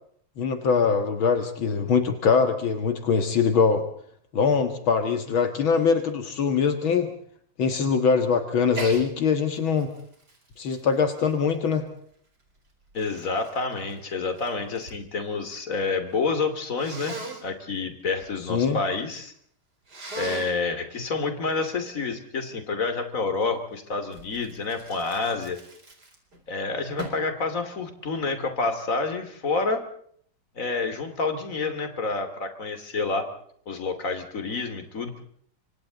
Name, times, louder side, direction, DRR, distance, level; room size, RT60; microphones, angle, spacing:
voice 1, 0.4-3.8 4.3-7.1 7.6-9.9 10.6-11.9 18.5-18.8, left 5 dB, 75° left, 7 dB, 2.4 m, -22 dB
Sneeze, 8.7-9.0 9.5-11.9 12.6-15.0 15.3-15.9 16.8-17.4 19.9-20.6 24.1-26.4 27.0-27.3, right 2 dB, 50° right, 5.0 m, -39 dB
voice 2, 12.9-19.3 20.1-25.6 26.5-29.8 30.5-33.3 33.7-35.2, left 4 dB, 40° left, 8 dB, 3.1 m, -28 dB
28.0 x 25.0 x 4.0 m, 0.62 s
omnidirectional pair, 2.3 m